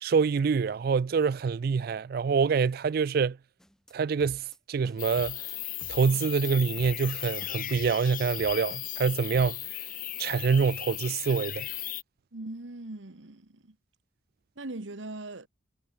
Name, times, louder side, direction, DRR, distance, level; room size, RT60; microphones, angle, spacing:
voice 1, 0.0-3.4 3.9-5.4 5.9-9.6 10.2-11.7, right 5 dB, 55° right, 0.3 m, -26 dB
sound 1, 3.6-3.9 4.2-4.6 4.8-5.5 5.8-6.5 6.8-7.1 7.4-8.1 8.4-9.1 9.3-9.5, equal, 5° left, 1.3 m, -50 dB
sound 2, 5.0-12.0, left 14 dB, 45° left, 1.0 m, -36 dB
voice 2, 12.3-13.8 14.5-15.5, right 2 dB, 80° right, 1.5 m, -40 dB
head